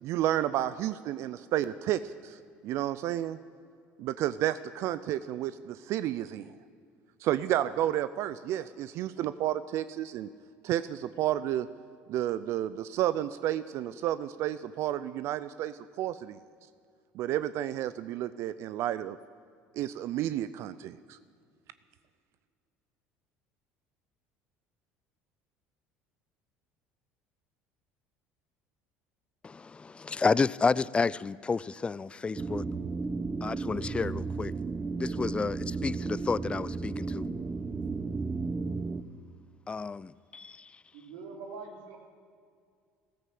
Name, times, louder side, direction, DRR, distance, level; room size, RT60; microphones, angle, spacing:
voice 1, 0.0-3.4 4.0-6.5 7.2-10.3 10.6-11.7 12.1-16.4 17.1-19.2 19.8-21.2, right 12 dB, 65° right, 0.5 m, -31 dB
voice 2, 29.4-32.6 33.4-34.5 35.0-37.3 39.7-40.7, left 4 dB, 20° left, 0.4 m, -30 dB
sound 1, 32.4-39.0, right 4 dB, 20° right, 0.8 m, -34 dB
voice 3, 40.9-42.0, right 4 dB, 85° right, 3.0 m, -43 dB
14.0 x 13.0 x 7.7 m
supercardioid pair, 90°, 5 cm